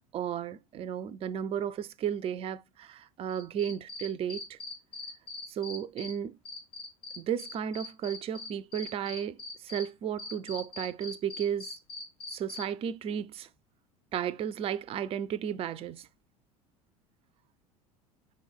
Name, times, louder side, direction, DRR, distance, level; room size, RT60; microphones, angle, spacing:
voice 1, 0.1-4.6 5.5-6.3 7.2-9.4 9.6-11.7 12.3-13.5 14.1-16.1, right 9 dB, 30° right, 0.5 m, -34 dB
Cricket, 3.3-6.1 6.4-9.8 10.2-12.6, left 3 dB, 50° left, 2.6 m, -41 dB
5.3 x 4.4 x 4.6 m
figure-of-eight pair, 70°, 19 cm